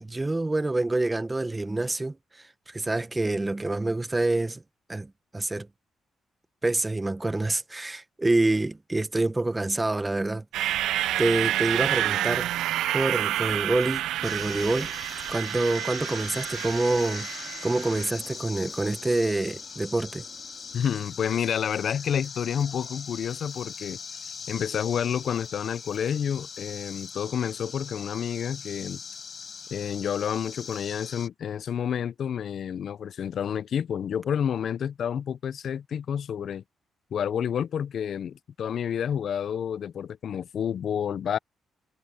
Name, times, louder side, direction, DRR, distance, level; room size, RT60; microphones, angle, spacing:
voice 1, 0.0-2.2 2.7-4.6 4.9-5.7 6.6-10.9 11.2-12.5 12.9-14.9 15.3-20.2, right 2 dB, 20° right, 1.0 m, -27 dB
sound 1, 10.5-18.1, right 13 dB, 90° right, 0.5 m, -29 dB
sound 2, 12.1-20.8, right 9 dB, 70° right, 3.6 m, -55 dB
sound 3, 14.2-31.3, left 5 dB, 45° left, 7.6 m, -41 dB
voice 2, 20.7-24.0 24.5-29.0 29.7-36.6 37.1-41.4, left 8 dB, 65° left, 0.5 m, -29 dB
cardioid pair, 80°, 0 cm